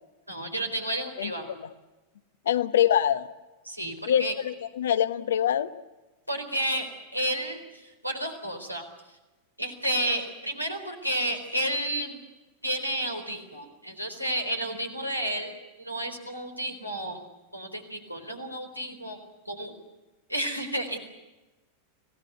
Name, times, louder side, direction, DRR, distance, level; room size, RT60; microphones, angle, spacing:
voice 1, 0.3-1.5 3.7-4.3 6.3-7.6 8.0-8.8 9.6-12.2 12.6-15.5 15.8-17.2 17.5-19.2 19.5-19.7 20.3-21.0, right 1 dB, 90° right, 2 dB, 4.1 m, -31 dB
voice 2, 1.2-1.7 2.4-3.3 4.0-5.7, left 10 dB, 60° left, 13 dB, 1.1 m, -25 dB
25.5 x 18.0 x 9.3 m, 1.1 s
figure-of-eight pair, 90°, 0 cm